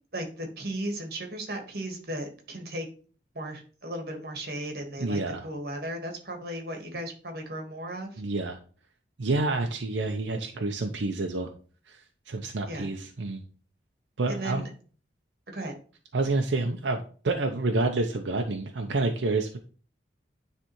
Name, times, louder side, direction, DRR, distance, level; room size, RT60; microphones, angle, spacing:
voice 1, 0.1-2.8 3.3-8.2 12.7-12.9 14.3-14.7 15.5-15.7, right 1 dB, 55° right, 3 dB, 1.4 m, -36 dB
voice 2, 5.0-5.5 8.2-8.6 9.2-11.5 11.9-13.4 14.2-14.6 16.1-19.7, right 2 dB, 85° right, 4 dB, 0.6 m, -28 dB
9.8 x 3.3 x 3.0 m, 0.39 s
head